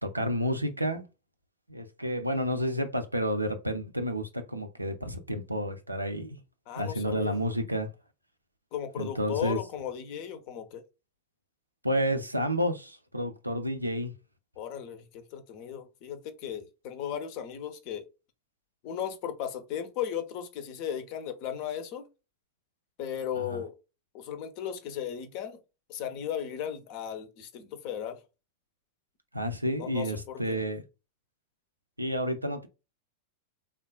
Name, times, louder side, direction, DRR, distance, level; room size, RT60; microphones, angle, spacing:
voice 1, 0.0-1.0 1.7-6.4 6.8-7.9 9.0-9.6 11.8-14.1 23.3-23.6 29.3-30.8 32.0-32.7, equal, 85° right, 0.4 m, -30 dB
voice 2, 6.7-7.4 8.7-10.8 14.6-18.1 18.8-22.1 23.0-23.8 24.1-25.6 25.9-28.2 29.8-30.6, left 9 dB, 45° left, 0.5 m, -36 dB
3.3 x 2.2 x 2.2 m
figure-of-eight pair, 90°, 0 cm